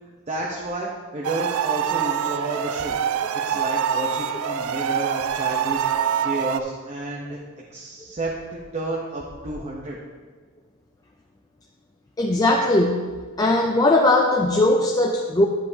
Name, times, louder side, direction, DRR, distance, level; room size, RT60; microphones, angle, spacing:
voice 1, 0.3-3.0 3.4-5.8 6.2-7.4 7.7-10.0, right 2 dB, 30° right, -4 dB, 0.8 m, -30 dB
sound 1, 1.2-6.6, right 8 dB, 75° right, 0.3 m, -25 dB
voice 2, 12.2-13.1 13.4-15.5, left 2 dB, 15° left, 1 dB, 0.4 m, -19 dB
10.5 x 7.6 x 2.8 m, 1.5 s
head